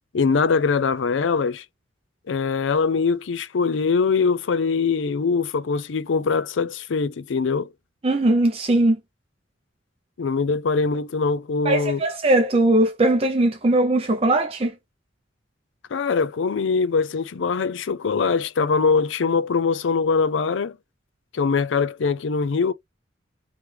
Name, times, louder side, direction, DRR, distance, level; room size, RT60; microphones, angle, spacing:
voice 1, 0.1-1.6 2.3-7.7 10.2-12.0 15.9-20.8 21.3-22.7, left 5 dB, 85° left, 0.5 m, -22 dB
voice 2, 8.0-9.0 11.7-14.7, right 1 dB, 30° right, 0.5 m, -19 dB
3.2 x 3.1 x 3.2 m
head